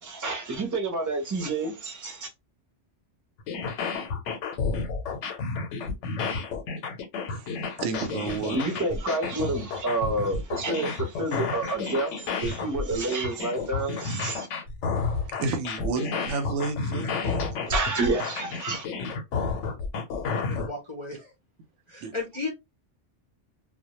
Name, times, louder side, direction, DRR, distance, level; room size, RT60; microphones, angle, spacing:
voice 1, 0.0-2.3 8.5-14.5 17.7-18.9, right 2 dB, 25° right, 0.4 m, -29 dB
sound 1, 3.4-20.7, left 4 dB, 90° left, 0.9 m, -31 dB
voice 2, 7.3-8.6 15.0-17.6 22.0-22.1, right 4 dB, 85° right, 0.9 m, -32 dB
voice 3, 20.3-21.3 21.9-22.5, left 3 dB, 40° left, 0.4 m, -34 dB
2.1 x 2.1 x 2.8 m
omnidirectional pair, 1.2 m